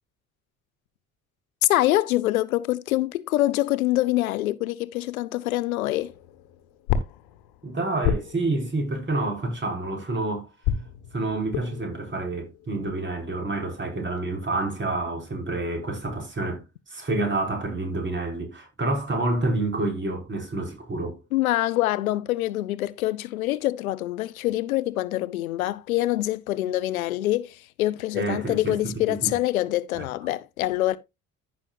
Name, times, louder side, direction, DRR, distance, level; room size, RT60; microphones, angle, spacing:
voice 1, 1.7-6.1 21.3-31.0, left 16 dB, 80° left, 0.6 m, -25 dB
sound 1, 6.0-10.1 10.6-13.7, left 8 dB, 60° left, 1.2 m, -32 dB
voice 2, 7.6-10.5 11.1-16.6 16.9-21.2 28.1-29.4 30.0-30.1, right 2 dB, 25° right, 4.8 m, -28 dB
14.5 x 6.1 x 2.4 m
figure-of-eight pair, 50°, 42 cm